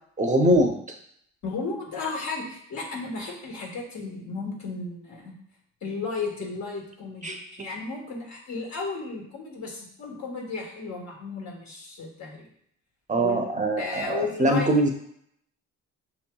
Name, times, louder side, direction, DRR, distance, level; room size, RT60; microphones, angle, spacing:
voice 1, 0.2-0.7 7.2-7.4 13.1-14.9, right 1 dB, 25° right, 3 dB, 0.6 m, -22 dB
voice 2, 1.4-5.3 5.8-12.5 13.1-13.5 13.8-14.8, left 4 dB, 65° left, -1 dB, 1.4 m, -34 dB
6.6 x 2.9 x 2.3 m, 0.69 s
cardioid pair, 90°, 30 cm